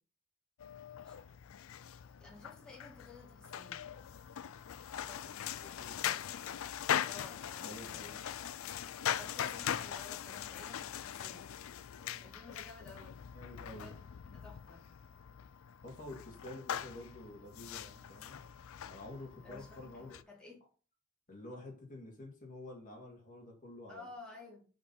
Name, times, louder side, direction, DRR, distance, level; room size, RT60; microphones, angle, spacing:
sound 1, 0.6-20.2, left 9 dB, 65° left, 0.4 m, -41 dB
voice 1, 2.2-3.9 4.9-5.4 7.0-8.2 9.1-11.5 12.2-13.1 13.7-13.9 14.2-14.9 19.4-20.6 23.9-24.6, left 3 dB, 5° left, -4 dB, 1.8 m, -53 dB
voice 2, 5.6-6.3 7.6-8.2 12.0-12.3 13.3-13.9 15.8-18.4 18.9-20.2 21.3-24.1, left 1 dB, 40° left, 0 dB, 2.2 m, -49 dB
5.1 x 4.3 x 5.5 m, 0.39 s
head